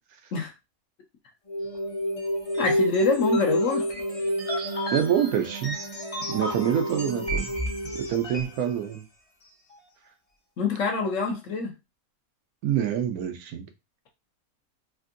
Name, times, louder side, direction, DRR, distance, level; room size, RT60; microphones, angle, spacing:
sound 1, 1.5-8.6, equal, 35° left, 0.6 m, -29 dB
voice 1, 2.6-3.9 10.6-11.7, left 4 dB, 65° left, 1.0 m, -26 dB
voice 2, 4.9-5.8 6.3-7.5 7.9-9.0 12.6-13.7, right 9 dB, 85° right, 1.1 m, -26 dB
3.4 x 2.6 x 2.5 m
omnidirectional pair, 1.5 m